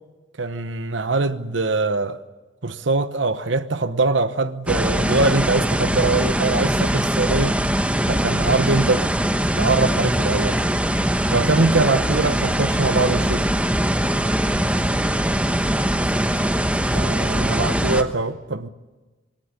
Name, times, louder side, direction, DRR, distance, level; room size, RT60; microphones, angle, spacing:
voice 1, 0.4-2.2 2.6-7.6 8.1-9.1 9.6-10.6 11.3-13.5 16.9-18.7, right 3 dB, 75° right, 1.0 m, -22 dB
sound 1, 4.7-18.0, right 1 dB, 5° right, 1.1 m, -21 dB
voice 2, 14.3-15.2 15.6-17.1, equal, 15° left, 2.7 m, -42 dB
23.0 x 17.5 x 9.7 m
head